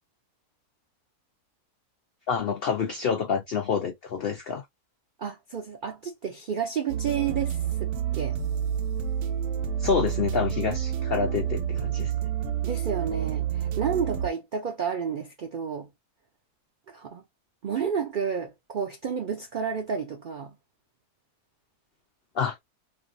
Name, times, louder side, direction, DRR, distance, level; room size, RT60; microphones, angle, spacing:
voice 1, 2.3-4.6 9.8-12.1 22.3-22.6, left 6 dB, 85° left, 0.5 m, -27 dB
voice 2, 5.2-8.4 12.6-15.9 16.9-17.2 17.6-20.5, right 7 dB, 85° right, 0.4 m, -31 dB
sound 1, 6.9-14.3, right 9 dB, 70° right, 0.9 m, -29 dB
3.0 x 2.7 x 2.5 m
omnidirectional pair, 1.6 m